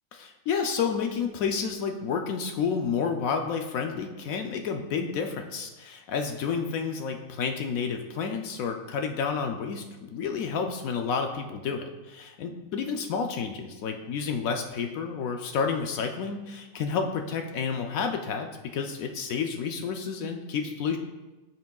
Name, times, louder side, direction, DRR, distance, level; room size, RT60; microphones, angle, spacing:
voice 1, 0.1-21.0, left 6 dB, 75° left, 4 dB, 1.0 m, -30 dB
9.7 x 5.9 x 2.3 m, 1.1 s
omnidirectional pair, 1.5 m